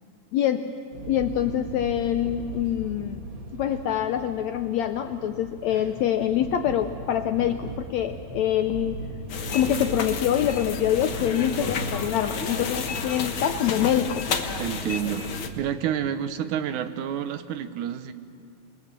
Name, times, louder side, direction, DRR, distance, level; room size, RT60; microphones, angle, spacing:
voice 1, 0.3-0.7 1.1-3.2 3.5-9.0 9.5-14.2, left 10 dB, 80° left, 7 dB, 1.6 m, -25 dB
sound 1, 0.9-14.3, right 2 dB, 40° right, 2.0 m, -39 dB
sound 2, 9.3-15.5, left 5 dB, 55° left, 1.4 m, -31 dB
voice 2, 14.6-18.1, right 9 dB, 70° right, 10 dB, 2.1 m, -29 dB
27.5 x 20.5 x 7.5 m, 2.5 s
omnidirectional pair, 4.0 m